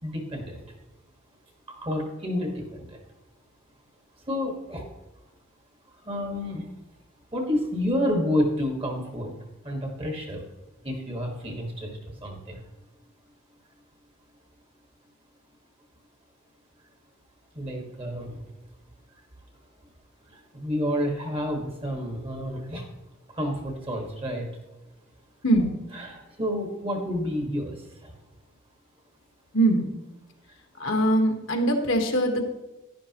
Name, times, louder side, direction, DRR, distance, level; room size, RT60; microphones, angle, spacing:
voice 1, 0.0-0.6 1.7-3.0 4.3-4.8 6.0-6.7 7.3-9.3 9.6-10.5 10.8-12.6 17.5-18.4 20.3-22.9 23.3-24.5 25.9-28.1, left 1 dB, 25° right, 2 dB, 1.6 m, -30 dB
voice 2, 29.5-29.9 30.8-32.4, right 1 dB, 60° left, 4 dB, 1.3 m, -22 dB
11.0 x 10.5 x 3.0 m, 1.1 s
head